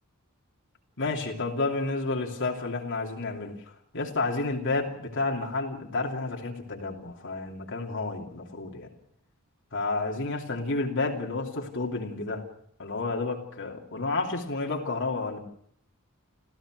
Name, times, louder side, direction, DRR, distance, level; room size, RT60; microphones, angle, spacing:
voice 1, 1.0-3.6 3.9-8.9 9.7-12.4 12.8-15.4, left 3 dB, 60° left, 1 dB, 2.8 m, -30 dB
28.5 x 14.5 x 6.3 m, 0.67 s
head